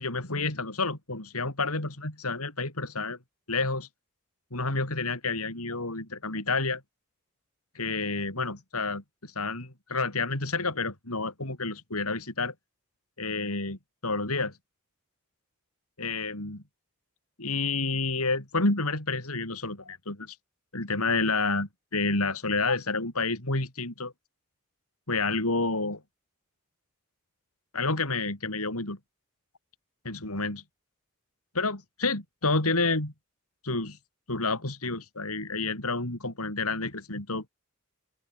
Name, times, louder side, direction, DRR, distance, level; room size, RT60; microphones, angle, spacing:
voice 1, 0.0-3.2 3.5-3.9 4.5-6.8 7.7-12.5 13.2-14.5 16.0-16.6 17.4-20.4 20.7-24.1 25.1-26.0 27.7-29.0 30.0-30.6 31.5-33.1 33.6-34.0 34.3-37.5, left 3 dB, 80° left, 4.8 m, -29 dB
open air
head